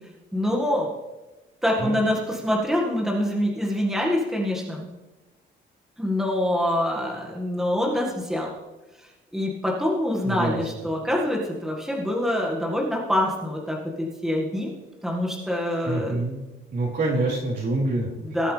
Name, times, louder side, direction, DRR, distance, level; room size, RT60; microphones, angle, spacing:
voice 1, 0.3-0.9 1.6-4.9 6.0-8.5 9.0-9.1 9.3-13.8 14.2-14.7 15.0-16.2 18.2-18.5, left 1 dB, ahead, -2 dB, 1.9 m, -25 dB
voice 2, 10.2-10.6 15.8-16.4 16.7-18.1, right 2 dB, 55° right, -4 dB, 4.1 m, -26 dB
19.0 x 7.6 x 3.4 m, 1.1 s
cardioid pair, 90°, 20 cm